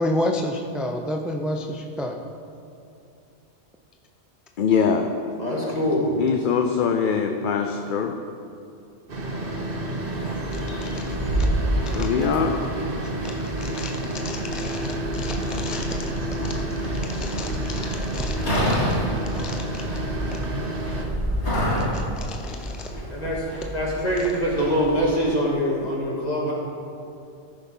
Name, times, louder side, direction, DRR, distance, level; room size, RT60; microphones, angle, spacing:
voice 1, 0.0-2.3 10.5-11.5 11.9-12.3 13.0-19.0 19.3-20.0 20.3-20.4 21.8-22.9 24.2-24.3 25.8-25.9, left 1 dB, ahead, 2 dB, 0.4 m, -32 dB
voice 2, 4.6-5.1 6.2-8.1 11.9-12.6, left 6 dB, 55° left, 5 dB, 0.7 m, -22 dB
voice 3, 5.4-6.2 23.1-23.5 23.7-26.5, equal, 35° left, -4 dB, 2.3 m, -24 dB
sound 1, 9.1-21.1, right 1 dB, 55° right, 1.4 m, -30 dB
sound 2, 10.0-25.0, equal, 80° left, 2.7 m, -29 dB
14.0 x 6.5 x 5.4 m, 2.6 s
omnidirectional pair, 1.1 m